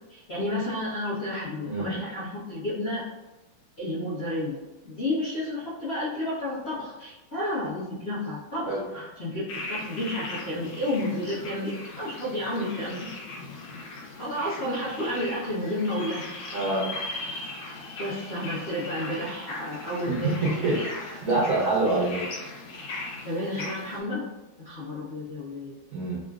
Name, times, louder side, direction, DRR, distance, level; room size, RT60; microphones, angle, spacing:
voice 1, 0.1-3.0 3.8-4.6 4.8-13.1 14.2-16.3 18.0-20.4 20.7-20.9 23.2-24.2 24.6-25.7, left 1 dB, 55° left, -13 dB, 0.7 m, -31 dB
voice 2, 1.7-2.0 8.7-8.8 16.5-16.9 20.1-22.2 25.9-26.2, right 2 dB, 85° right, -5 dB, 0.7 m, -26 dB
sound 1, 9.5-24.0, left 2 dB, 75° left, 1.4 m, -39 dB
3.7 x 2.1 x 2.3 m, 1.0 s
omnidirectional pair, 2.3 m